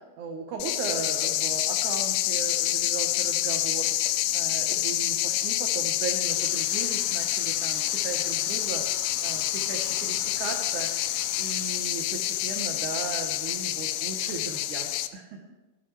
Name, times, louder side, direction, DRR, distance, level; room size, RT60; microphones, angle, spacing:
voice 1, 0.0-15.4, right 4 dB, 70° right, 2 dB, 1.9 m, -37 dB
sound 1, 0.6-15.1, left 14 dB, 85° left, 2.7 m, -27 dB
sound 2, 6.2-12.6, left 2 dB, 40° left, 2.9 m, -46 dB
16.0 x 12.0 x 3.2 m, 1.1 s
omnidirectional pair, 4.9 m